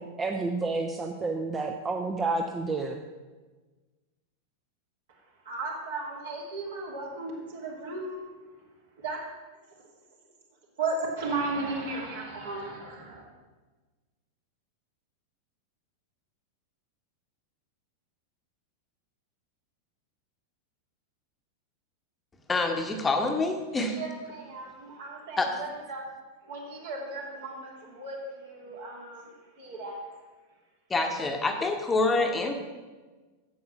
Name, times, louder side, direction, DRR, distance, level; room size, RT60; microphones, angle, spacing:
voice 1, 0.0-3.0, right 3 dB, 15° right, 4 dB, 0.7 m, -30 dB
voice 2, 5.4-8.3 9.0-9.2 10.8-13.2 23.9-26.0 26.4-30.1, right 3 dB, 60° right, -1 dB, 2.8 m, -35 dB
voice 3, 22.5-24.0 25.4-25.6 30.9-32.5, left 3 dB, 15° left, 4 dB, 1.1 m, -26 dB
9.5 x 7.8 x 6.0 m, 1.3 s
figure-of-eight pair, 90°, 0 cm